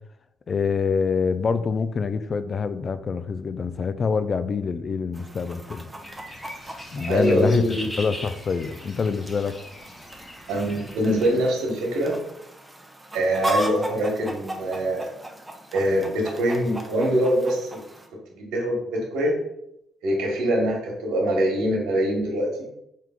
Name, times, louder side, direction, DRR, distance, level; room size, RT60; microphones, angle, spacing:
voice 1, 0.5-5.9 6.9-7.6 8.0-9.5, left 5 dB, 45° left, 11 dB, 0.3 m, -25 dB
Chicken rooster, 5.1-18.1, right 1 dB, 15° right, 0.6 m, -37 dB
sound 1, 6.0-11.4, left 1 dB, 15° left, 0.9 m, -40 dB
voice 2, 7.1-7.9 10.5-12.2 13.1-15.1 15.7-17.8 18.4-19.3 20.0-22.7, right 1 dB, 85° right, -1 dB, 1.0 m, -23 dB
4.5 x 2.3 x 3.5 m, 0.79 s
cardioid pair, 90°, 0 cm